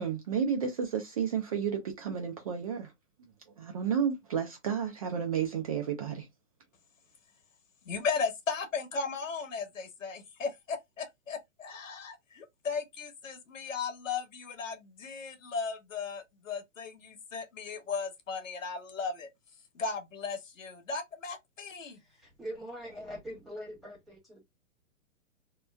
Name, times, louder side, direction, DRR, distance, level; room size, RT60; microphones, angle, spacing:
voice 1, 0.0-2.9 3.2-3.3 3.6-6.3, right 7 dB, 30° right, 0.4 m, -32 dB
voice 2, 7.8-19.3 19.7-22.0, left 5 dB, 80° left, 1.1 m, -36 dB
voice 3, 21.9-24.4, equal, ahead, 1.2 m, -43 dB
3.0 x 2.1 x 2.2 m
hypercardioid pair, 135°, 39 cm